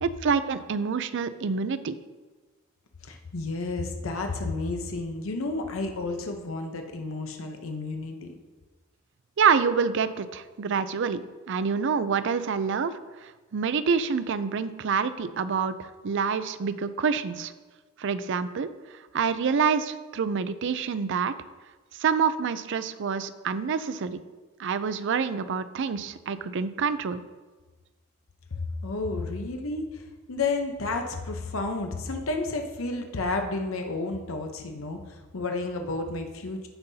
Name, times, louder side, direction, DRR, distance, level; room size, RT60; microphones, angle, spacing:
voice 1, 0.0-2.0 9.4-17.5 18.0-18.7 19.1-21.3 21.9-24.2 24.6-27.2, right 6 dB, 60° right, 13 dB, 0.5 m, -27 dB
voice 2, 3.0-8.3 28.5-36.7, left 3 dB, 80° left, 4 dB, 0.8 m, -31 dB
15.5 x 5.5 x 2.7 m, 1.3 s
head